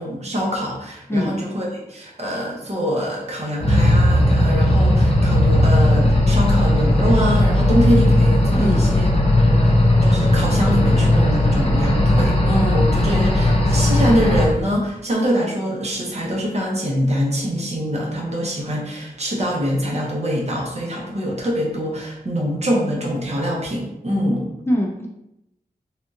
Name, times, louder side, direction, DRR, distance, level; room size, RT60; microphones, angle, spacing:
voice 1, 0.0-9.1 9.4-9.7 10.0-24.5, equal, 45° right, -3 dB, 0.9 m, -24 dB
sound 1, 3.6-14.5, left 1 dB, 40° left, 0.8 m, -16 dB
voice 2, 24.7-25.1, equal, 15° left, -1 dB, 0.5 m, -21 dB
3.4 x 2.4 x 2.7 m, 0.86 s
wide cardioid pair, 70°, 16 cm